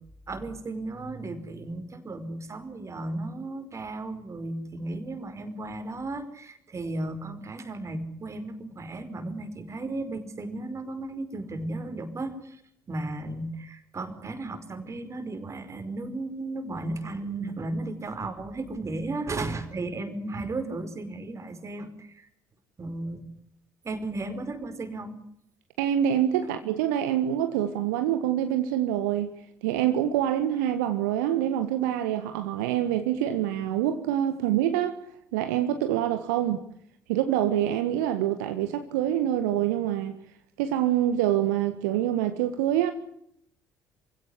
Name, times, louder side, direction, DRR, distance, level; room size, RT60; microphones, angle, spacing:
voice 1, 0.3-12.6 12.9-22.3 22.8-23.2 23.8-25.2 26.4-26.5, right 2 dB, 30° right, 5.1 m, -35 dB
voice 2, 25.8-29.3 29.6-35.0 35.3-36.6 37.1-40.2 40.6-42.9, right 11 dB, 70° right, 1.6 m, -26 dB
27.5 x 16.5 x 10.0 m
figure-of-eight pair, 50°, 10 cm